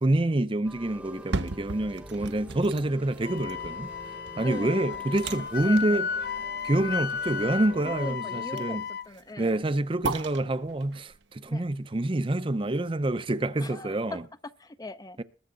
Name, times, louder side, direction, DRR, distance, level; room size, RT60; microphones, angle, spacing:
voice 1, 0.0-3.9 4.4-6.1 6.6-8.8 9.4-14.2 15.2-15.3, right 1 dB, 30° right, 0.6 m, -27 dB
sound 1, 0.6-8.2, equal, 5° right, 0.9 m, -47 dB
sound 2, 1.0-13.1 13.5-13.6, right 3 dB, 80° right, 0.9 m, -39 dB
Wind instrument woodwind instrument, 3.2-9.1, left 6 dB, 60° left, 0.7 m, -34 dB
voice 2, 4.4-5.3 5.6-6.0 7.8-9.6 11.5-11.6 13.6-15.2, left 1 dB, 20° left, 0.6 m, -41 dB
21.0 x 7.2 x 3.9 m
head